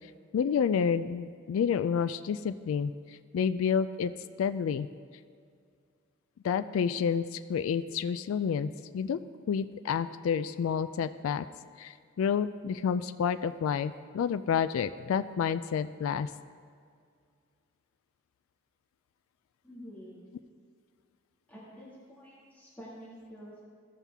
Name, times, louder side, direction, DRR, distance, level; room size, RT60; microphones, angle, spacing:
voice 1, 0.3-2.9 3.3-4.1 4.4-4.9 6.4-8.7 8.9-9.2 9.5-11.4 11.8-16.3, left 7 dB, 90° left, 12 dB, 0.3 m, -29 dB
voice 2, 19.6-20.2 21.5-23.6, equal, 10° left, -8 dB, 2.0 m, -48 dB
15.0 x 5.7 x 3.5 m, 2.2 s
head